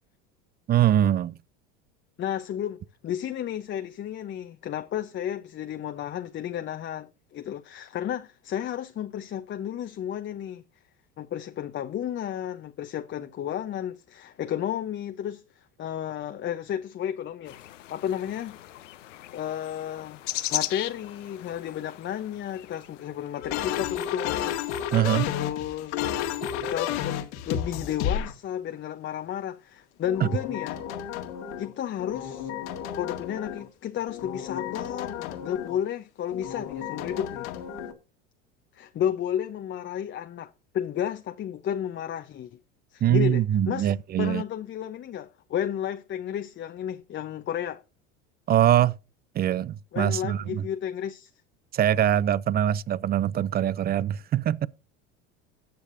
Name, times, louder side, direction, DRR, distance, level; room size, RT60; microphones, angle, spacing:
voice 1, 0.7-1.3 24.9-25.3 30.2-30.3 43.0-44.4 48.5-48.9 49.3-50.6 51.7-54.7, right 11 dB, 25° right, 0.5 m, -23 dB
voice 2, 2.2-10.6 11.2-17.6 17.9-18.6 19.3-20.2 20.5-24.9 25.3-26.1 26.6-30.8 31.6-32.5 32.9-37.5 38.7-42.6 42.9-43.9 44.2-47.8 49.9-51.3, left 10 dB, 30° left, 0.8 m, -32 dB
sound 1, 17.5-23.7, left 14 dB, 85° left, 0.9 m, -37 dB
sound 2, 23.4-28.3 30.0-31.7 32.0-33.7 34.1-35.8 36.3-37.9, left 9 dB, 70° left, 1.9 m, -32 dB
19.0 x 6.5 x 2.7 m
hypercardioid pair, 90°, 36 cm